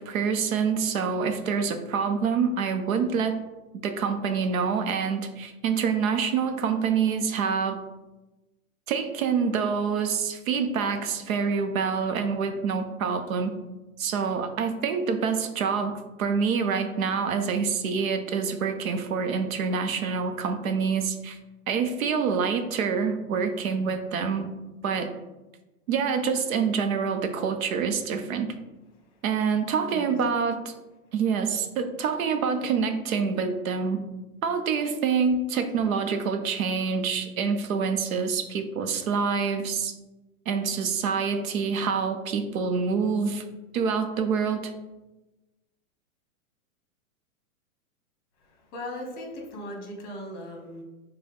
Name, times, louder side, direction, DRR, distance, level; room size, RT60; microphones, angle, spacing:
voice 1, 0.0-3.4 3.7-7.8 8.9-13.5 14.0-21.4 21.7-24.5 24.8-25.1 25.9-28.5 29.2-30.7 31.1-34.0 34.4-39.9 40.5-43.4 43.7-44.7, right 6 dB, 75° right, 7 dB, 0.7 m, -26 dB
voice 2, 29.8-30.2 48.4-50.8, left 1 dB, 30° left, 0 dB, 1.1 m, -38 dB
6.4 x 2.2 x 3.5 m, 1.1 s
hypercardioid pair, 155°, 42 cm